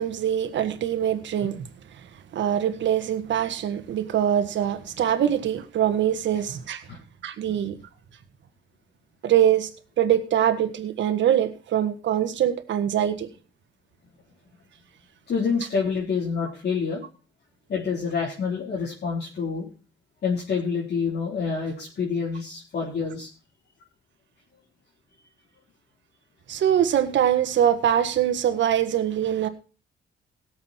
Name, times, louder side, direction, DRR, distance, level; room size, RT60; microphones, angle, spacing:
voice 1, 0.0-1.6 2.3-6.8 7.2-7.8 9.2-9.7 10.0-13.3 26.5-29.5, right 10 dB, 70° right, 1.7 m, -23 dB
voice 2, 15.3-17.0 17.7-19.7 20.2-23.3, left 5 dB, 55° left, 3.9 m, -27 dB
17.0 x 7.7 x 4.4 m
cardioid pair, 90°, 20 cm